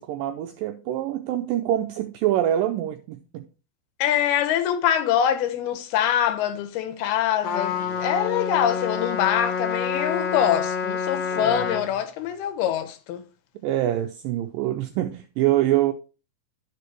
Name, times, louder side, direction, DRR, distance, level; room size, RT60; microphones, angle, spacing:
voice 1, 0.0-3.5 11.3-11.7 13.6-15.9, right 13 dB, 90° right, 2.0 m, -25 dB
voice 2, 4.0-13.2, left 10 dB, 85° left, 2.8 m, -24 dB
Trumpet, 7.4-11.9, left 6 dB, 65° left, 1.6 m, -28 dB
12.5 x 5.0 x 3.1 m
omnidirectional pair, 4.6 m